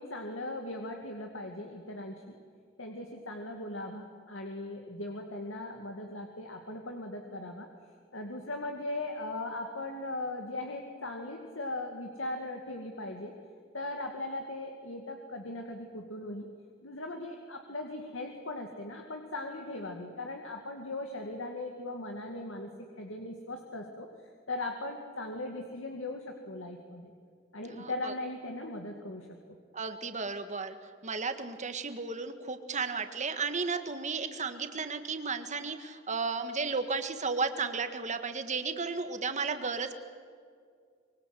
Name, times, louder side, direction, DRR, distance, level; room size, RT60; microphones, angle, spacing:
voice 1, 0.0-2.4 2.8-7.7 8.1-13.3 13.7-16.5 16.8-22.7 23.0-24.1 24.5-27.1 27.5-29.3, left 2 dB, 80° left, 3 dB, 2.3 m, -39 dB
voice 2, 27.7-28.1 29.7-30.8 31.0-40.0, right 4 dB, 40° right, 8 dB, 1.8 m, -34 dB
25.5 x 23.5 x 7.8 m, 2.1 s
head